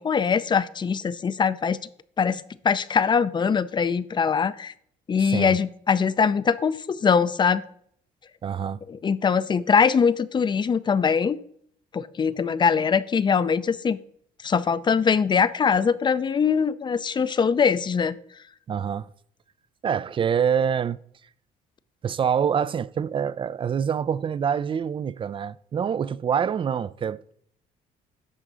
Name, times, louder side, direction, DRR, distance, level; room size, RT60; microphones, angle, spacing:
voice 1, 0.0-1.8 2.2-4.7 5.1-7.6 8.9-11.4 11.9-14.0 14.4-18.2, left 6 dB, 25° left, 0.5 m, -22 dB
voice 2, 5.2-5.6 8.4-8.8 18.7-19.1 19.8-21.0 22.0-27.3, right 7 dB, 30° right, 0.3 m, -26 dB
11.0 x 3.7 x 6.8 m
cardioid pair, 110°, 17 cm